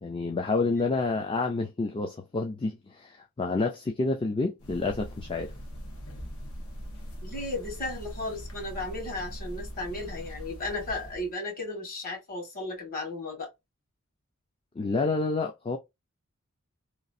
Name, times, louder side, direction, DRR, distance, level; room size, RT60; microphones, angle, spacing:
voice 1, 0.0-5.5 14.8-15.8, left 3 dB, 25° left, 0.4 m, -29 dB
sound 1, 4.6-11.3, equal, 75° left, 1.1 m, -41 dB
voice 2, 7.2-13.5, left 2 dB, 40° left, 1.7 m, -35 dB
3.1 x 2.4 x 2.6 m
head